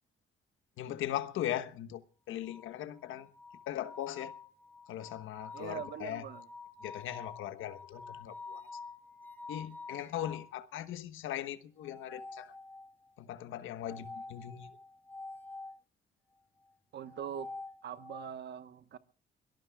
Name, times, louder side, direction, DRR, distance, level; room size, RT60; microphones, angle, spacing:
voice 1, 0.8-2.0 2.3-3.3 3.7-4.3 4.9-6.3 6.8-8.7 9.5-12.5 13.2-14.8, left 12 dB, 85° left, 1.2 m, -39 dB
sound 1, 2.4-10.5 11.8-13.1 13.8-15.8 17.0-18.4, left 3 dB, 10° left, 2.3 m, -48 dB
voice 2, 5.5-6.5 16.9-17.5 17.8-19.0, right 8 dB, 60° right, 1.3 m, -42 dB
23.5 x 18.5 x 2.3 m
cardioid pair, 90°, 20 cm